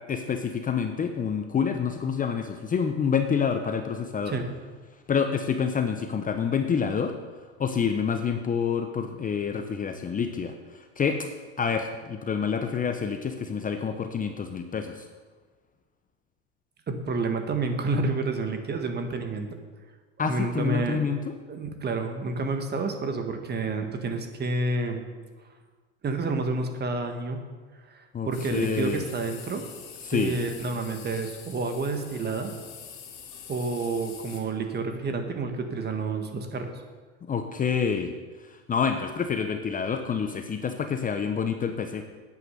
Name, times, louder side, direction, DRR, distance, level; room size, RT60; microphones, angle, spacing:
voice 1, 0.0-4.3 5.1-7.1 7.6-11.3 11.6-15.1 20.2-21.3 28.1-29.0 30.0-30.4 37.3-38.1 38.4-42.1, left 6 dB, 25° left, 6 dB, 0.8 m, -28 dB
voice 2, 16.9-19.5 20.2-21.0 21.5-25.0 26.0-27.4 27.9-29.6 30.1-32.5 33.5-36.7, right 3 dB, 30° right, 6 dB, 1.7 m, -29 dB
sound 1, 28.3-34.4, left 7 dB, 65° left, 2.9 m, -45 dB
9.3 x 8.6 x 6.7 m, 1.4 s
hypercardioid pair, 95°, 35 cm